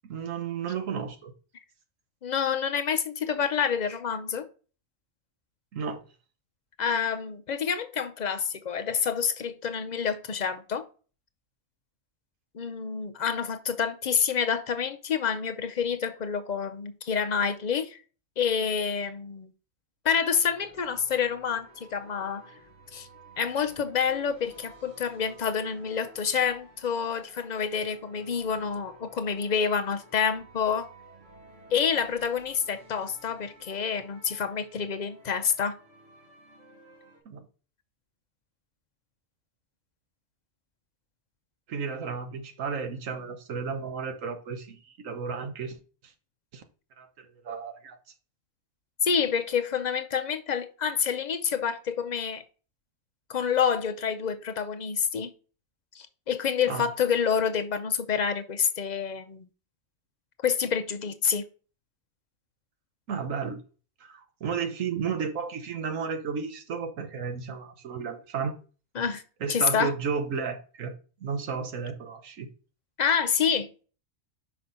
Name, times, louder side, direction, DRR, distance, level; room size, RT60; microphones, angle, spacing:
voice 1, 0.0-1.3 5.7-6.0 37.2-37.4 41.7-45.8 46.0-46.1 46.5-46.6 47.0-48.0 56.7-56.9 63.1-63.6 64.0-68.5 69.4-70.9 71.2-72.5, right 6 dB, 80° right, 1.4 m, -33 dB
voice 2, 2.2-4.5 6.8-10.8 12.5-18.0 18.4-19.5 20.0-22.4 22.9-23.1 23.4-30.9 31.7-35.8 49.0-52.4 53.3-55.3 55.9-59.5 60.4-61.4 69.0-69.2 69.5-69.9 73.0-73.7, left 7 dB, 50° left, 0.5 m, -28 dB
sound 1, 20.3-37.2, right 1 dB, 65° right, 2.2 m, -54 dB
5.8 x 5.1 x 3.9 m
omnidirectional pair, 1.3 m